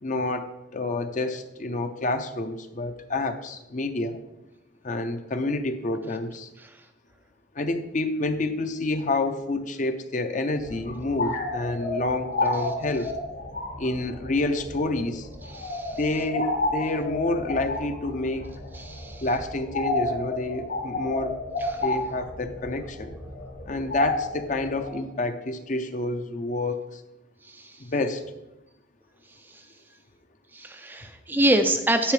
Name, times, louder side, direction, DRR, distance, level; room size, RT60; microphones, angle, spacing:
voice 1, 0.0-4.2 4.8-6.5 7.5-13.1 13.8-15.3 15.9-18.5 19.2-23.1 23.7-27.0 27.8-28.2, left 2 dB, 40° left, 8 dB, 0.6 m, -28 dB
sound 1, 10.6-24.9, left 2 dB, 60° left, 2.3 m, -31 dB
voice 2, 15.5-16.0 18.7-19.2 21.6-21.8 27.4-27.8 29.5-29.6 30.5-32.1, right 1 dB, 10° right, 7 dB, 0.3 m, -26 dB
10.0 x 8.3 x 3.2 m, 0.96 s
head